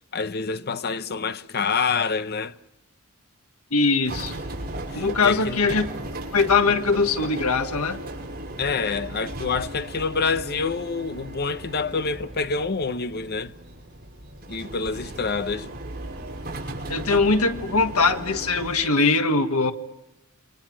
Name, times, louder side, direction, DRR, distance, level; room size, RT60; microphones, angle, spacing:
voice 1, 0.1-2.5 4.9-5.6 8.6-13.5 14.5-15.7, left 4 dB, 50° left, 0.8 m, -27 dB
voice 2, 3.7-4.4 4.9-5.9 6.3-8.0 16.9-19.7, left 4 dB, 85° left, 1.7 m, -21 dB
sound 1, 4.1-18.7, right 1 dB, 45° right, 6.0 m, -36 dB
29.0 x 24.5 x 6.2 m
head